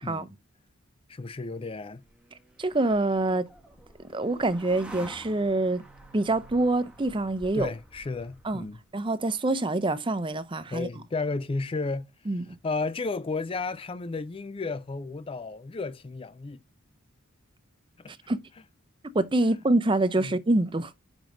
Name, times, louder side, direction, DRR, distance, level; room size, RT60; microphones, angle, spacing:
voice 1, 1.1-2.0 7.5-8.8 10.7-16.6 18.0-18.1 20.2-20.3, left 3 dB, 25° left, 0.4 m, -33 dB
sound 1, 1.5-8.9, right 1 dB, 5° right, 1.3 m, -49 dB
voice 2, 2.6-3.5 4.1-5.8 6.1-7.7 8.4-8.6 8.9-10.9 12.3-12.5 18.3-18.4 19.1-20.9, right 2 dB, 25° right, 0.6 m, -25 dB
6.0 x 5.2 x 3.9 m
head